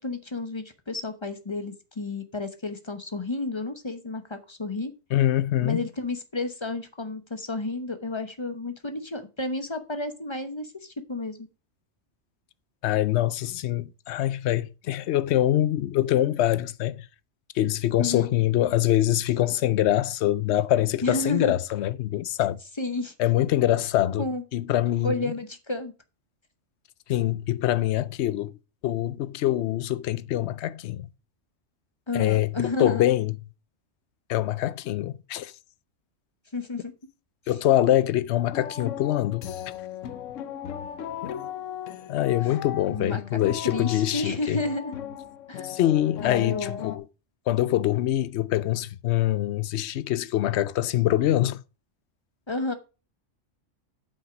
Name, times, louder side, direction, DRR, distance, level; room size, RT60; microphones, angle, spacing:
voice 1, 0.0-4.9 5.6-11.5 18.0-18.3 21.0-21.6 22.8-23.1 24.2-24.4 25.0-25.9 32.1-33.0 36.5-36.9 42.4-42.5 42.9-44.9 45.5-45.7 46.2-46.8 52.5-52.7, left 2 dB, 25° left, 0.9 m, -31 dB
voice 2, 5.1-5.9 12.8-17.1 17.5-22.6 23.2-24.3 24.5-25.3 27.1-28.6 28.8-31.1 32.1-33.4 34.3-35.5 37.5-39.7 41.2-41.4 42.1-44.6 45.6-47.0 47.5-51.6, left 13 dB, 70° left, 0.8 m, -24 dB
sound 1, 38.5-47.0, left 9 dB, 90° left, 1.1 m, -37 dB
8.0 x 5.8 x 5.1 m
omnidirectional pair, 1.3 m